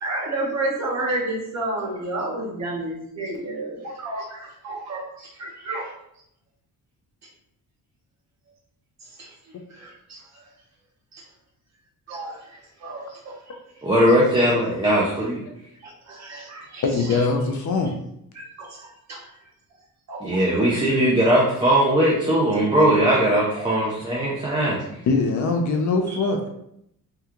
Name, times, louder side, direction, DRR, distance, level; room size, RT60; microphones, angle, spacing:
voice 1, 0.0-5.9 9.0-10.5 11.1-11.2 12.1-13.8 15.8-17.3 18.3-19.5 20.1-20.2 20.5-20.7 23.3-23.7 24.5-24.6 26.1-26.5, right 2 dB, 45° right, -2 dB, 0.9 m, -32 dB
voice 2, 13.8-15.4 20.2-24.8, right 1 dB, 15° right, -6 dB, 0.3 m, -19 dB
voice 3, 16.8-17.9 25.1-26.5, left 3 dB, 50° left, 3 dB, 0.5 m, -22 dB
3.6 x 2.2 x 2.8 m, 0.76 s
cardioid pair, 165°, 38 cm